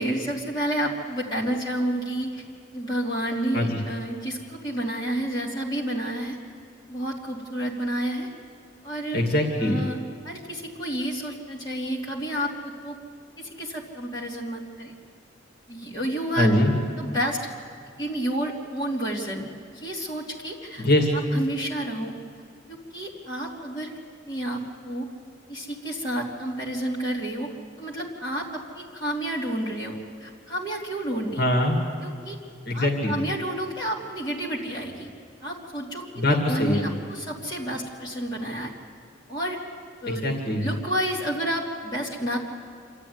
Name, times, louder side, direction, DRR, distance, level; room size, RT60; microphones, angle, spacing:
voice 1, 0.0-2.4 2.7-6.4 6.9-8.3 8.8-9.2 9.6-10.0 10.2-13.0 13.4-14.9 15.7-16.5 17.0-17.4 18.0-20.8 21.3-22.1 22.7-23.9 24.3-25.1 25.5-27.5 27.8-31.4 32.0-32.4 32.7-35.1 35.4-38.7 39.3-39.6 40.0-40.3 40.6-42.4, right 1 dB, 20° left, -4 dB, 3.0 m, -30 dB
voice 2, 9.1-9.8 16.4-16.7 20.8-21.1 31.4-31.8 32.7-33.1 36.1-36.9 40.1-40.6, left 1 dB, 55° left, 1 dB, 2.4 m, -22 dB
27.0 x 13.5 x 9.6 m, 2.1 s
head